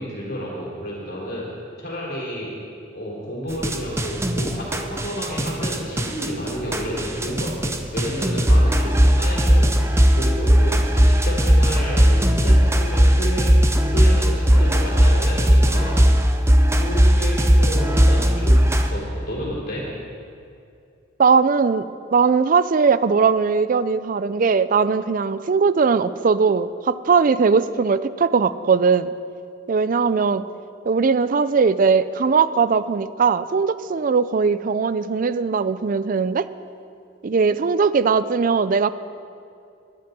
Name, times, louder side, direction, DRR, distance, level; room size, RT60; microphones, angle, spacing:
voice 1, 0.0-2.5 2.9-13.6 13.9-16.0 16.8-18.6 18.9-19.9, equal, 55° left, -5 dB, 3.7 m, -30 dB
sound 1, 3.5-18.9, equal, 15° right, 0.7 m, -17 dB
voice 2, 21.2-21.9 22.1-29.1 29.7-30.5 30.9-36.5 37.2-38.9, right 5 dB, 45° right, 14 dB, 0.4 m, -19 dB
10.5 x 7.7 x 9.8 m, 2.5 s
head